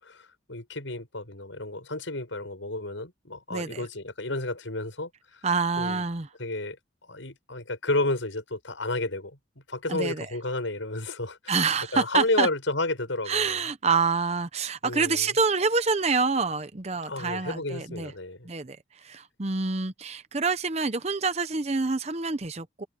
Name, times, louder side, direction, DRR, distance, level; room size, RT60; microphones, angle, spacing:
voice 1, 0.0-5.4 5.8-6.0 6.4-6.8 7.1-9.4 9.7-11.7 11.9-13.6 14.8-15.3 17.0-18.5, left 2 dB, 80° left, 6.9 m, -31 dB
voice 2, 3.5-3.9 5.4-6.3 9.9-10.3 11.5-12.5 13.3-18.1 18.4-22.9, right 4 dB, 35° right, 0.7 m, -27 dB
head